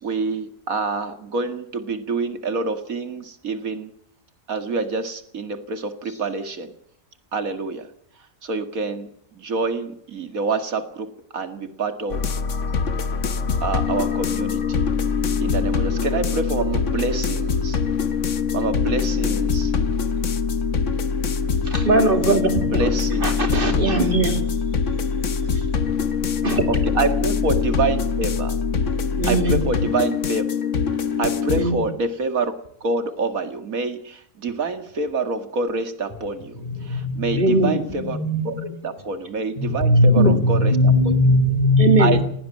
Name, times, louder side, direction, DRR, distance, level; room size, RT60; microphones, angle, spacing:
voice 1, 0.0-3.9 4.5-6.7 7.3-7.9 8.4-12.2 13.6-14.9 15.4-17.8 18.5-19.7 22.7-23.3 26.7-28.6 29.3-30.4 31.2-32.5 32.8-38.2 38.4-38.5 38.8-40.7 42.0-42.2, right 3 dB, 90° right, 9 dB, 2.4 m, -26 dB
sound 1, 12.1-31.7, left 6 dB, 65° left, 1.5 m, -23 dB
voice 2, 21.6-22.9 23.2-24.4 25.3-25.6 26.4-26.7 29.2-29.6 31.5-31.8 37.3-37.8 40.0-40.4 41.8-42.2, right 2 dB, 40° right, 7 dB, 2.8 m, -21 dB
voice 3, 36.5-37.4 38.0-38.8 39.6-42.2, left 2 dB, 25° left, 7 dB, 2.3 m, -19 dB
18.5 x 16.5 x 8.8 m, 0.68 s
omnidirectional pair, 1.4 m